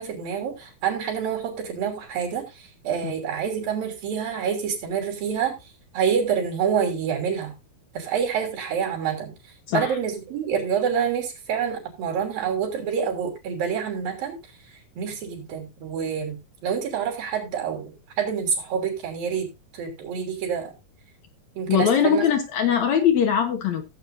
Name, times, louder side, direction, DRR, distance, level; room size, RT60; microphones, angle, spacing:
voice 1, 0.0-5.6 5.9-7.5 7.9-9.4 9.7-14.4 14.7-19.5 19.7-20.7 21.6-22.2, right 7 dB, 80° right, 1 dB, 4.8 m, -27 dB
voice 2, 9.7-10.0 21.7-23.8, left 8 dB, 65° left, 5 dB, 2.2 m, -21 dB
16.5 x 8.2 x 2.6 m, 0.24 s
omnidirectional pair, 4.0 m